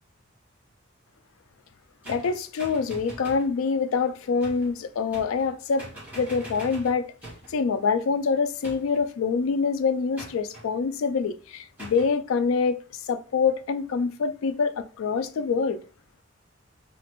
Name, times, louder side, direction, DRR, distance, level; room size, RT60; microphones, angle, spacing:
sound 1, 2.0-3.5 4.4-4.7 5.1-5.5 5.8-7.6 8.6-9.1 10.2-10.7 11.8-12.1, right 1 dB, 10° right, 1.2 m, -42 dB
voice 1, 2.1-5.8 6.2-7.1 7.5-12.8 13.1-15.8, left 5 dB, 85° left, 0.3 m, -25 dB
2.9 x 2.5 x 2.9 m
head